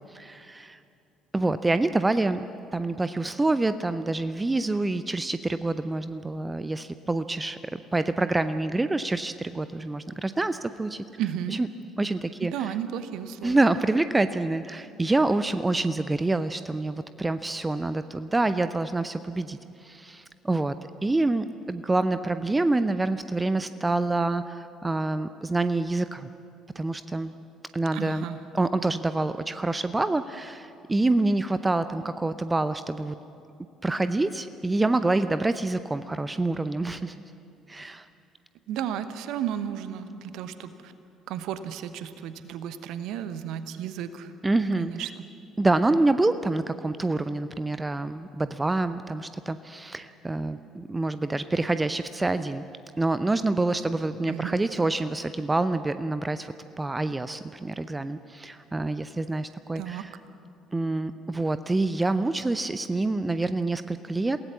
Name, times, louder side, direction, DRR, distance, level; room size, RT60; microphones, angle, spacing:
voice 1, 0.1-0.8 1.3-11.0 11.5-11.7 12.0-12.7 13.4-20.7 21.0-26.3 26.8-27.3 27.7-28.2 28.5-33.2 33.8-37.1 37.7-38.1 44.4-45.1 45.6-52.6 53.0-60.2 60.7-64.4, right 2 dB, 15° right, 12 dB, 0.6 m, -27 dB
voice 2, 11.2-11.6 12.5-13.6 27.9-28.4 38.7-40.9 41.3-44.3 44.8-45.2 54.3-54.6 59.7-60.0, right 9 dB, 55° right, 12 dB, 0.9 m, -33 dB
28.0 x 17.5 x 7.2 m, 2.6 s
figure-of-eight pair, 50°, 0 cm